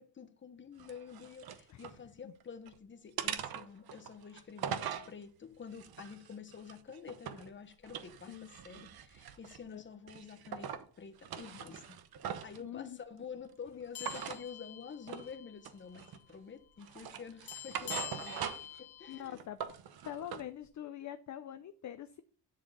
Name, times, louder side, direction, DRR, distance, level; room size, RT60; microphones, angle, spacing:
voice 1, 0.0-12.0 12.4-18.4 18.8-19.4, left 6 dB, 25° left, 1.0 m, -49 dB
sound 1, 0.8-2.0 2.4-2.8 3.2-5.1 5.7-7.5 7.8-9.7 10.1-10.9 11.2-12.6 14.0-14.4 15.1-15.3 15.6-16.4 16.8-18.8 19.1-20.5, right 8 dB, 55° right, 1.0 m, -42 dB
voice 2, 12.6-13.0 19.1-19.6 20.0-22.2, left 11 dB, 45° left, 0.5 m, -44 dB
sound 2, 13.9-15.6 15.9-16.1 17.5-19.2, left 11 dB, 65° left, 1.0 m, -46 dB
10.5 x 4.5 x 5.3 m
cardioid pair, 165°, 43 cm